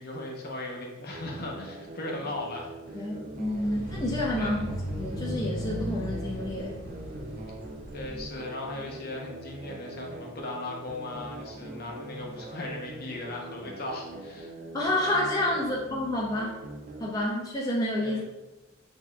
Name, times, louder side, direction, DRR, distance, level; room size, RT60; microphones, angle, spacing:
voice 1, 0.0-3.1 4.4-4.5 7.9-14.5 18.0-18.2, left 2 dB, 50° left, 0 dB, 0.8 m, -38 dB
sound 1, 1.1-17.1, right 2 dB, 45° right, 0.4 m, -43 dB
voice 2, 2.9-6.8 11.7-11.8 14.7-16.6 17.0-18.2, left 1 dB, 20° left, -4 dB, 0.4 m, -29 dB
sound 2, 3.3-8.3, equal, 80° right, 1.4 m, -36 dB
6.2 x 2.8 x 2.3 m, 1.0 s
head